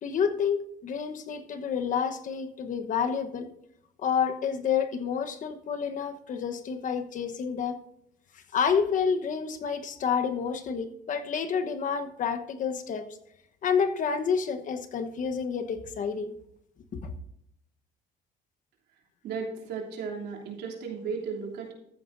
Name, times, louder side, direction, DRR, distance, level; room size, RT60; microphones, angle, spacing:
voice 1, 0.0-3.5 4.0-7.8 8.5-13.1 13.6-16.3 16.9-17.1, left 6 dB, 50° left, 8 dB, 1.1 m, -29 dB
voice 2, 19.2-21.7, right 5 dB, 75° right, 0 dB, 3.0 m, -35 dB
14.0 x 9.4 x 2.6 m, 0.74 s
cardioid pair, 110°, 17 cm